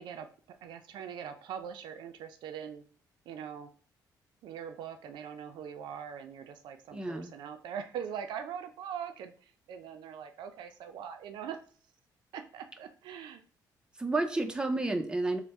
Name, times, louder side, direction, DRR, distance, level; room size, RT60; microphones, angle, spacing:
voice 1, 0.0-2.8 3.3-3.7 4.4-11.6 12.3-13.4, right 8 dB, 80° right, 7 dB, 0.5 m, -42 dB
voice 2, 6.9-7.3 14.0-15.4, right 2 dB, 10° right, 5 dB, 0.5 m, -31 dB
3.4 x 2.1 x 4.1 m, 0.42 s
cardioid pair, 95°, 8 cm